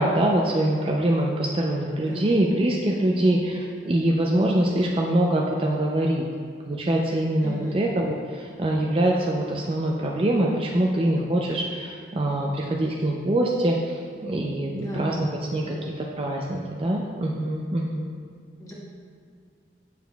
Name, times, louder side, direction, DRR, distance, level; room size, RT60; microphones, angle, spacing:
voice 1, 0.0-6.2 6.7-18.1, right 1 dB, 30° right, -1 dB, 0.4 m, -24 dB
voice 2, 2.0-2.3 7.4-7.8 14.7-15.9 18.6-18.7, equal, 20° left, -6 dB, 1.2 m, -37 dB
8.1 x 6.9 x 2.3 m, 2.1 s
head